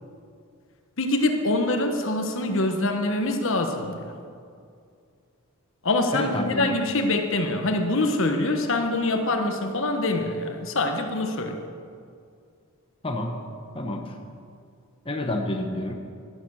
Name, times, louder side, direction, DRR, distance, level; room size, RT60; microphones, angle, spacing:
voice 1, 1.0-4.1 5.8-11.6, left 2 dB, 65° left, 5 dB, 1.3 m, -25 dB
voice 2, 6.1-6.8 13.0-13.4 13.7-14.2 15.0-15.9, left 1 dB, 25° left, 3 dB, 1.0 m, -29 dB
12.5 x 12.0 x 6.5 m, 2.3 s
head